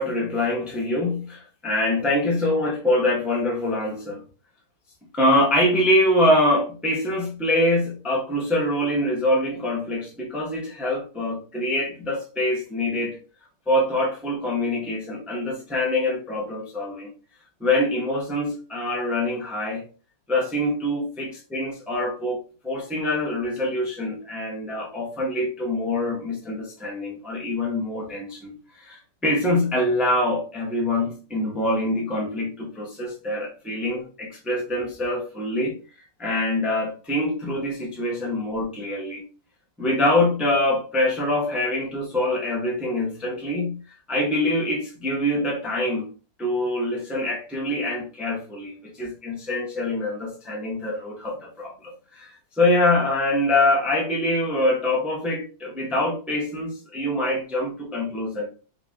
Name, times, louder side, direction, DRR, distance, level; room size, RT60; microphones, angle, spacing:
voice 1, 0.0-4.2 5.1-13.2 13.7-17.1 17.6-19.8 20.3-39.2 39.8-43.8 44.1-46.1 46.4-52.3 52.6-58.5, left 1 dB, ahead, -2 dB, 0.5 m, -24 dB
3.7 x 2.8 x 3.8 m, 0.36 s
omnidirectional pair, 2.4 m